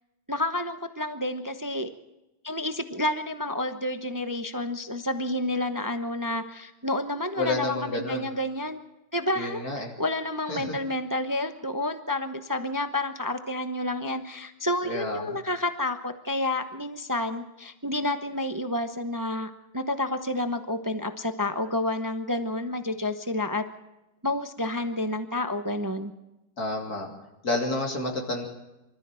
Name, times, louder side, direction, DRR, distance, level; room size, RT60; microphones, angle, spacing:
voice 1, 0.3-1.9 2.4-8.8 9.1-9.6 10.0-23.6 24.2-26.1, left 1 dB, 20° right, 8 dB, 0.6 m, -29 dB
voice 2, 7.4-8.3 9.3-9.9 10.5-10.8 14.8-15.4 26.6-27.1 27.4-28.5, left 2 dB, 50° left, 0 dB, 3.4 m, -30 dB
25.0 x 14.0 x 7.6 m, 0.97 s
omnidirectional pair, 2.1 m